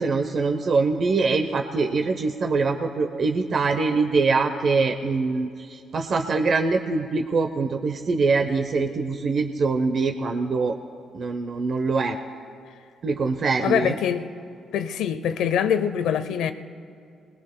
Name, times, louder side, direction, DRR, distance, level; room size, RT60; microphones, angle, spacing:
voice 1, 0.0-10.8 11.1-12.2 13.0-13.9, right 4 dB, 50° right, 0.7 m, -23 dB
voice 2, 13.6-14.2 14.7-16.5, left 8 dB, 85° left, 0.7 m, -24 dB
23.0 x 20.5 x 2.2 m
cardioid pair, 90°, 0 cm